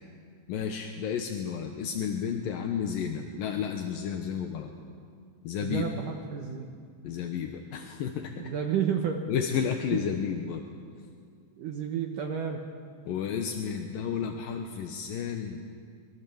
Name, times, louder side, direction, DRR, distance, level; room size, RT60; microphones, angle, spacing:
voice 1, 0.5-4.7 5.4-5.9 7.0-8.3 9.3-10.6 13.1-15.6, left 7 dB, 75° left, 4 dB, 2.1 m, -32 dB
voice 2, 5.6-6.7 8.4-9.2 11.6-12.6, right 8 dB, 75° right, 3 dB, 1.9 m, -31 dB
24.5 x 22.0 x 7.1 m, 2.2 s
omnidirectional pair, 5.5 m